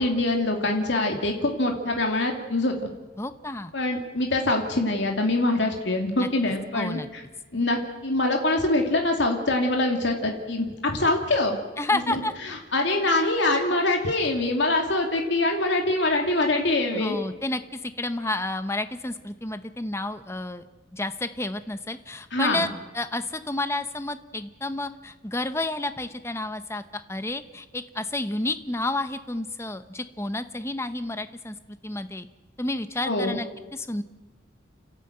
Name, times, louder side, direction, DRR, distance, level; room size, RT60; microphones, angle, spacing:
voice 1, 0.0-2.9 3.7-7.2 7.5-11.6 11.9-12.2 12.5-17.2 22.3-22.7 33.0-33.4, left 2 dB, 70° left, 2 dB, 2.6 m, -24 dB
voice 2, 3.2-3.7 6.2-6.3 6.7-7.1 11.8-12.3 16.9-20.6 20.9-22.7 22.9-31.5 31.8-32.3 32.6-34.0, left 2 dB, 15° left, 10 dB, 0.9 m, -30 dB
29.5 x 12.5 x 9.0 m, 1.2 s
head